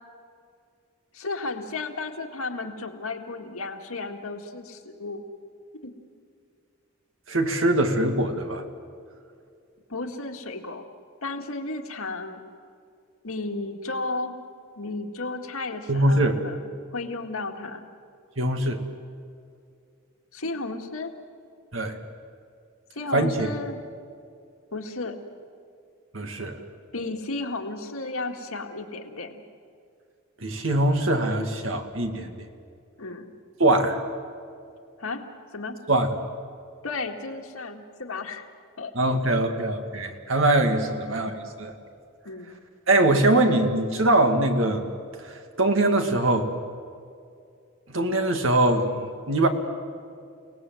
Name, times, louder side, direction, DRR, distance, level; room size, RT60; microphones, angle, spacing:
voice 1, 1.1-5.2 5.8-5.9 9.9-10.9 11.2-12.4 13.2-14.3 14.8-17.9 20.3-21.1 22.9-23.8 24.7-25.2 26.9-29.4 33.0-33.3 35.0-35.7 36.8-38.5 38.8-38.9 39.2-39.3 40.9-41.1 42.3-42.5, left 3 dB, 85° left, 3 dB, 2.0 m, -33 dB
voice 2, 7.3-8.6 15.9-16.4 18.4-18.8 21.7-22.0 23.1-23.5 26.1-26.6 30.4-32.5 33.6-34.0 35.9-36.1 39.0-41.3 41.6-41.7 42.9-44.8 45.2-46.5 47.9-49.5, right 2 dB, 65° right, 5 dB, 2.2 m, -22 dB
29.5 x 18.5 x 7.8 m, 2.4 s
head